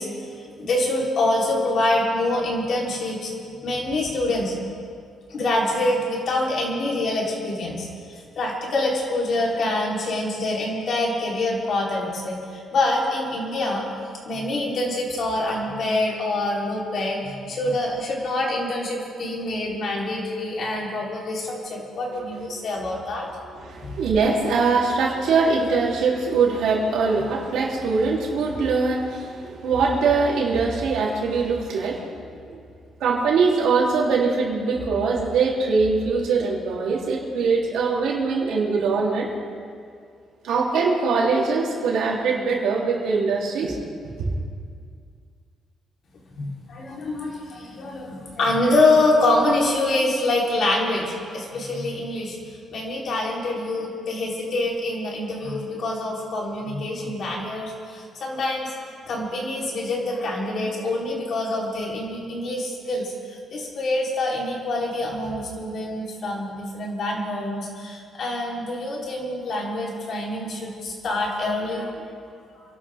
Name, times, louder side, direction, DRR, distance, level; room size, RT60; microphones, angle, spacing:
voice 1, 0.0-3.3 3.6-4.5 5.3-7.9 8.4-13.9 14.2-23.3 23.8-23.9 46.4-52.4 52.7-58.7 59.1-71.9, left 2 dB, 60° left, -3 dB, 4.0 m, -25 dB
voice 2, 23.6-32.6 33.0-39.3 40.4-43.8, right 4 dB, 80° right, -3 dB, 3.5 m, -22 dB
27.5 x 12.5 x 3.7 m, 2.3 s
cardioid pair, 90°, 0 cm